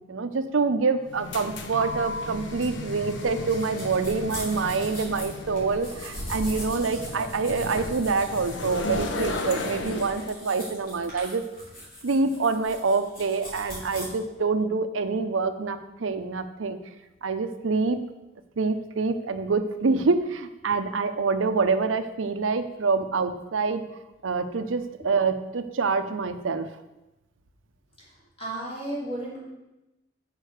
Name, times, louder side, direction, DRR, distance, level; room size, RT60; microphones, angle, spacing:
voice 1, 0.1-11.5 12.0-16.8 17.2-18.0 18.6-23.8 24.2-26.7, right 4 dB, 85° right, 10 dB, 0.6 m, -26 dB
sound 1, 1.0-10.3, left 2 dB, 70° left, 0.8 m, -35 dB
sound 2, 2.6-14.0, equal, 50° left, 3.4 m, -41 dB
voice 2, 28.4-29.4, right 1 dB, 30° left, -6 dB, 3.0 m, -33 dB
6.5 x 5.1 x 6.5 m, 0.97 s
head